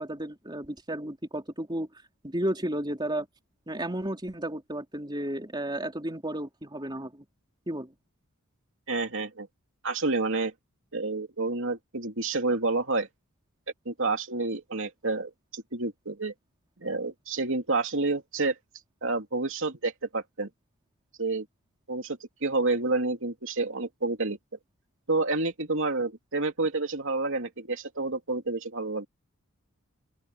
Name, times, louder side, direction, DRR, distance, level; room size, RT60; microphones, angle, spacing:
voice 1, 0.0-1.9 2.2-3.3 3.7-7.2 7.7-7.9, right 1 dB, 20° right, 3.9 m, -33 dB
voice 2, 8.9-9.5 9.8-10.5 10.9-13.1 13.8-16.3 16.8-18.5 19.0-20.5 21.2-21.4 21.9-24.4 25.1-29.1, right 3 dB, 60° right, 3.1 m, -29 dB
open air
head